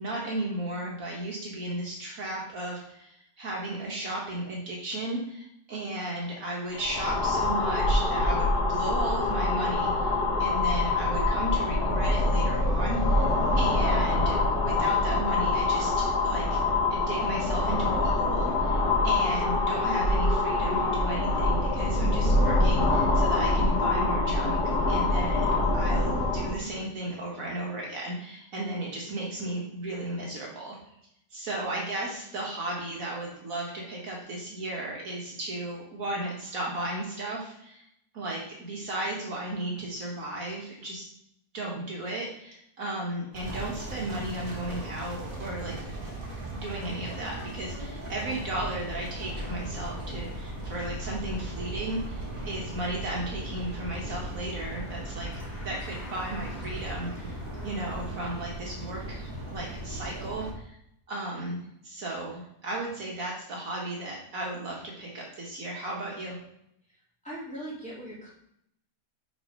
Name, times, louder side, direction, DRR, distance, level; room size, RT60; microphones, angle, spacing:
voice 1, 0.0-16.6 16.9-30.8 31.3-37.8 38.1-41.0 41.5-45.8 46.5-55.3 55.6-60.8 61.1-66.4, right 1 dB, 60° right, -3 dB, 1.5 m, -35 dB
sound 1, 6.7-26.6, left 2 dB, 80° left, 1.7 m, -25 dB
sound 2, 43.3-60.5, right 1 dB, 35° right, 1.7 m, -38 dB
sound 3, 48.5-58.1, left 1 dB, 55° left, 2.3 m, -43 dB
voice 2, 67.2-68.3, right 1 dB, 5° left, -8 dB, 3.0 m, -39 dB
5.9 x 4.5 x 5.1 m, 0.76 s
omnidirectional pair, 1.7 m